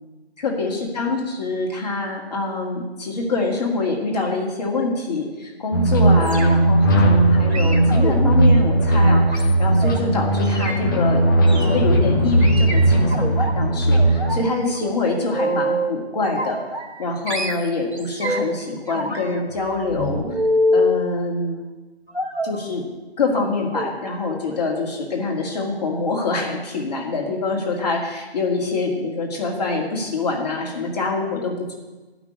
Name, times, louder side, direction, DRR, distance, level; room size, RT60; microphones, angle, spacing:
voice 1, 0.4-11.2 11.5-16.6 17.0-20.2 20.7-21.7 22.4-22.8 23.2-31.7, left 3 dB, 40° left, -1 dB, 2.5 m, -25 dB
sound 1, 5.7-14.4, right 1 dB, 20° left, 0.9 m, -17 dB
sound 2, 6.2-6.8 7.5-10.0 10.4-10.8 11.5-11.8 12.4-13.5 13.9-14.4 14.7-16.0 16.4-17.0 17.3-18.6 18.9-21.0 22.1-22.6 23.3-23.4 23.7-23.9 24.3-24.5 24.8-24.9, equal, 80° right, 2.4 m, -26 dB
11.0 x 6.1 x 8.6 m, 1.2 s
figure-of-eight pair, 155°, 33 cm